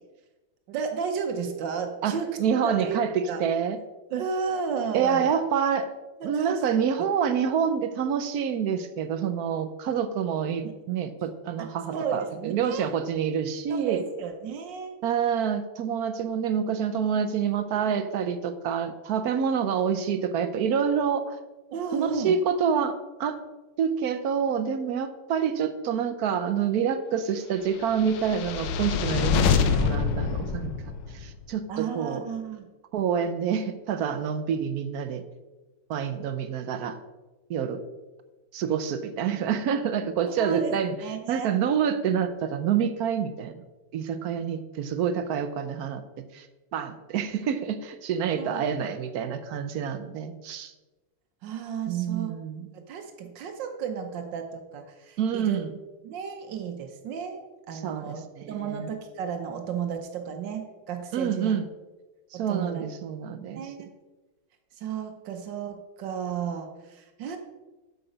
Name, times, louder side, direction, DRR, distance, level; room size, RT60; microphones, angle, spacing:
voice 1, 0.7-2.4 2.6-3.0 3.3-3.4 4.1-5.3 6.2-6.6 11.9-12.9 13.7-14.9 21.7-22.4 31.7-32.7 40.4-41.5 48.4-48.6 51.4-52.3 52.7-55.6 56.0-61.5 62.3-62.8 63.5-63.9 64.8-67.4, right 6 dB, 85° right, 5 dB, 1.5 m, -33 dB
voice 2, 2.0-3.8 4.9-5.9 6.2-14.0 15.0-21.4 21.9-23.4 23.8-30.7 31.1-32.3 32.9-35.2 35.9-37.0 37.5-37.8 38.5-41.0 41.3-43.6 43.9-46.0 46.3-46.5 46.7-50.7 51.9-52.7 55.2-55.7 57.7-58.9 61.1-61.7 62.3-63.7, right 7 dB, 70° right, 10 dB, 1.0 m, -27 dB
sound 1, 27.9-31.3, left 6 dB, 80° left, 1.4 m, -25 dB
8.0 x 6.9 x 5.0 m, 1.2 s
omnidirectional pair, 1.9 m